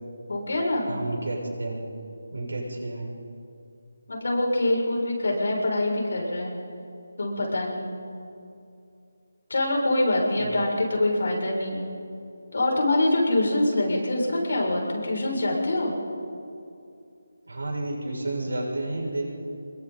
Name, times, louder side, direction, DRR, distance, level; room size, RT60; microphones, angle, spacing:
voice 1, 0.3-0.9 4.1-6.5 7.2-7.9 9.5-11.9 12.5-15.9, left 1 dB, 60° left, -2 dB, 7.2 m, -24 dB
voice 2, 0.9-1.8 2.3-3.2 10.4-10.5 17.5-19.3, right 2 dB, 90° right, -2 dB, 7.3 m, -31 dB
27.5 x 22.5 x 4.3 m, 2.5 s
figure-of-eight pair, 175°, 0 cm